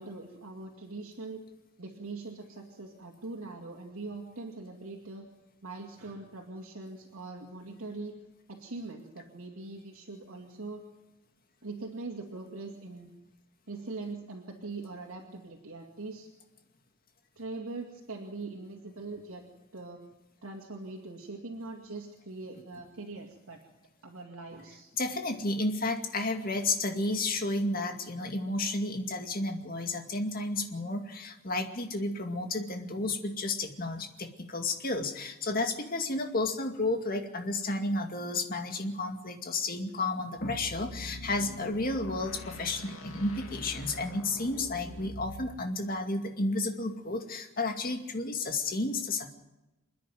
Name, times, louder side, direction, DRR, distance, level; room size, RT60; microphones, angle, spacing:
voice 1, 0.0-1.4 1.8-5.2 5.6-8.2 8.5-10.8 11.6-13.1 13.7-16.3 17.4-19.4 19.7-20.0 20.4-23.6 24.0-24.9, right 3 dB, 85° right, 0 dB, 2.4 m, -42 dB
voice 2, 25.0-49.3, left 2 dB, 45° left, 4 dB, 2.3 m, -32 dB
sound 1, 40.4-45.6, left 1 dB, 80° left, 2.4 m, -44 dB
27.5 x 10.0 x 9.4 m, 0.98 s
head